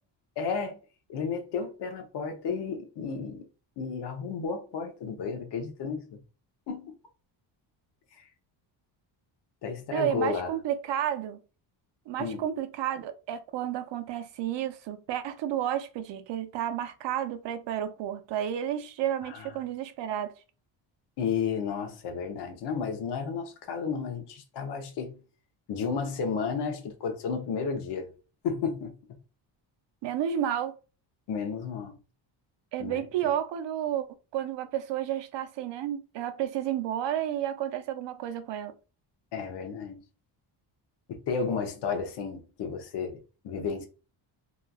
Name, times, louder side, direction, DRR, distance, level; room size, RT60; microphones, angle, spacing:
voice 1, 0.4-0.8 1.1-3.5 3.8-6.2 6.7-6.9 9.6-10.5 12.2-12.4 19.3-19.4 21.2-25.2 25.7-28.1 28.4-29.0 31.3-32.0 32.8-33.0 39.3-40.0 41.1-43.8, left 5 dB, 60° left, 0.8 m, -32 dB
voice 2, 9.9-11.4 12.1-20.3 30.0-30.7 32.7-34.1 34.3-38.7, right 10 dB, 65° right, 0.6 m, -31 dB
3.1 x 2.4 x 2.3 m
cardioid pair, 135°, 47 cm